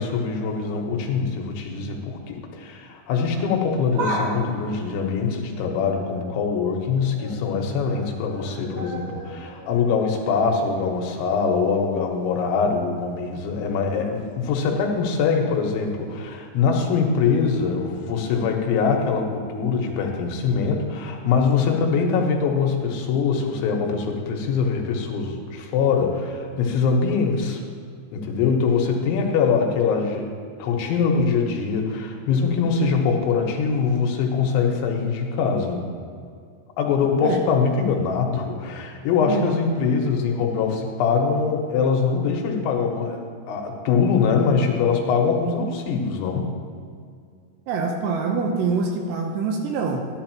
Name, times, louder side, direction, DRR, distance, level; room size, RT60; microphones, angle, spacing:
voice 1, 0.0-27.6 28.1-30.3 30.6-35.9 36.8-43.2 43.5-46.5, left 5 dB, 80° left, 1 dB, 3.3 m, -23 dB
sound 1, 3.9-6.6 6.9-7.4 7.7-11.6 12.0-12.1 13.1-13.2, right 2 dB, 55° right, 3.0 m, -36 dB
voice 2, 47.7-50.1, right 4 dB, 75° right, 2 dB, 2.7 m, -25 dB
13.5 x 11.0 x 2.9 m, 2.2 s
omnidirectional pair, 5.4 m